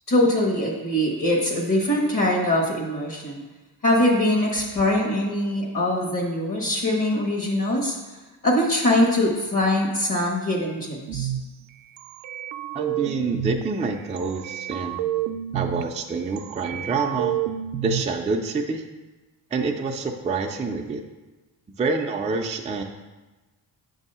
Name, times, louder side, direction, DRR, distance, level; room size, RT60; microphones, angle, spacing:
voice 1, 0.1-3.4 3.8-8.0 8.4-11.3, left 1 dB, 45° left, 0 dB, 1.2 m, -22 dB
sound 1, 11.1-11.4 12.0-13.6 14.2-15.8 16.4-18.0, right 12 dB, 75° right, 0.5 m, -29 dB
voice 2, 12.7-15.0 15.5-17.4 17.8-18.8 19.5-21.0 21.8-22.8, right 4 dB, 20° right, 1 dB, 0.3 m, -27 dB
7.2 x 2.7 x 5.4 m, 1.2 s
cardioid pair, 120°, 44 cm